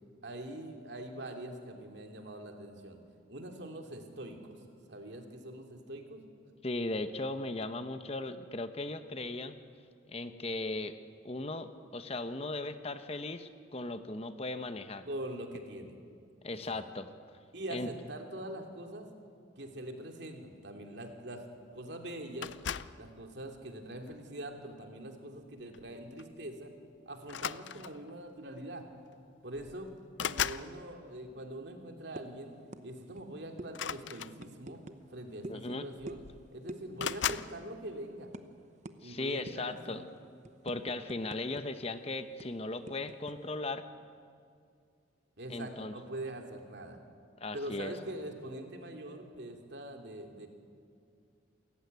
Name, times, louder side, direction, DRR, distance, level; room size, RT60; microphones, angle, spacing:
voice 1, 0.2-3.0 3.3-4.6 4.9-6.2 15.1-16.0 16.5-16.8 17.5-19.1 19.6-21.4 21.7-22.5 23.0-26.7 27.1-28.8 29.4-29.9 30.2-32.5 32.8-34.8 35.1-36.2 36.5-38.3 39.0-40.0 45.4-47.0 47.5-50.5, right 1 dB, 60° right, 3 dB, 2.8 m, -43 dB
voice 2, 6.6-9.6 10.1-11.0 11.2-15.1 16.4-17.1 17.7-17.9 35.5-35.9 39.0-40.0 40.6-43.9 45.5-45.9 47.4-47.9, left 2 dB, 30° left, 9 dB, 0.9 m, -37 dB
sound 1, 22.4-23.0 23.9-24.2 25.7-25.9 26.2-26.4 27.2-28.1 29.1-29.2 29.5-30.7 33.7-34.8 35.7-35.8 36.0-36.5 37.0-37.5, left 9 dB, 65° left, 0.5 m, -37 dB
sound 2, 32.2-32.4 32.7-32.9 33.1-33.3 33.6-33.7 34.4-35.0 35.4-35.6 36.1-36.3 36.7-36.8 37.3-37.4 37.7-37.9 38.3-38.4 38.8-39.0 39.5-39.7 40.1-41.6 41.9-42.0 42.4-43.3, right 1 dB, 35° right, 0.9 m, -45 dB
28.0 x 15.0 x 9.5 m, 2.3 s
head